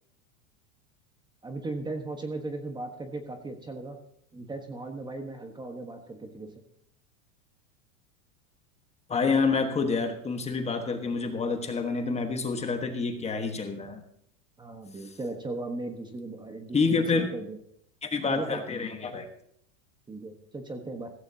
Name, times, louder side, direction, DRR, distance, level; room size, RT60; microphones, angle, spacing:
voice 1, 1.4-4.0 4.3-6.6 14.6-17.6 18.3-18.6 20.1-21.1, right 2 dB, 10° right, 5 dB, 1.2 m, -37 dB
voice 2, 9.1-14.0 16.7-17.3 18.0-19.3, left 4 dB, 15° left, 5 dB, 1.4 m, -28 dB
16.0 x 14.5 x 2.8 m, 0.70 s
supercardioid pair, 140°, 39 cm